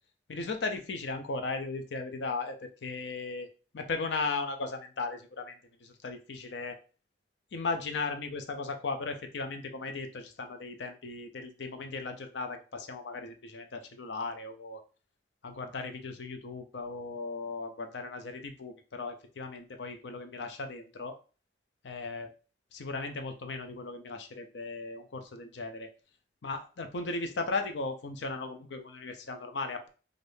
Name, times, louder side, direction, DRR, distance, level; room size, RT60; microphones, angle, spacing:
voice 1, 0.3-2.6 2.8-3.5 3.7-6.8 7.5-14.8 15.4-21.2 21.8-22.3 22.7-25.9 26.4-29.9, left 3 dB, 75° left, 7 dB, 0.5 m, -37 dB
3.4 x 2.5 x 2.6 m, 0.35 s
head